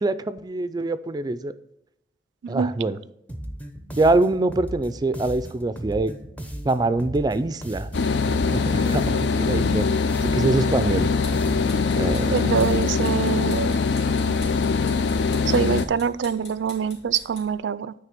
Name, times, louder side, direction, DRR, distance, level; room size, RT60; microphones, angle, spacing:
voice 1, 0.0-1.5 2.5-3.0 4.0-6.1 6.6-7.9 8.5-9.9 10.3-11.1 12.0-12.5, right 2 dB, 25° right, 13 dB, 0.4 m, -24 dB
voice 2, 2.4-2.7 12.3-13.7 15.5-17.9, right 6 dB, 90° right, 17 dB, 0.4 m, -24 dB
sound 1, 3.3-13.1, equal, 10° left, 0.7 m, -36 dB
sound 2, 7.9-15.9, left 4 dB, 75° left, 0.5 m, -22 dB
sound 3, 11.1-17.6, left 2 dB, 40° left, 2.7 m, -46 dB
9.3 x 3.3 x 6.6 m, 0.81 s
head